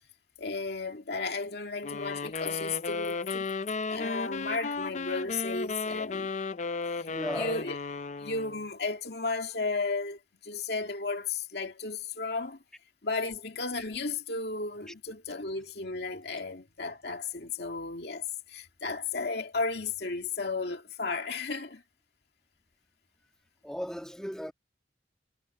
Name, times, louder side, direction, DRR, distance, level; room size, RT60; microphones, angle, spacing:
voice 1, 0.4-3.5 3.9-6.3 6.9-7.8 8.2-12.6 13.0-21.8, left 4 dB, 60° left, 2.2 m, -34 dB
sound 1, 1.8-8.6, left 4 dB, 40° left, 0.5 m, -34 dB
voice 2, 7.1-7.6 14.9-15.0 23.6-24.5, equal, 5° left, 1.5 m, -36 dB
head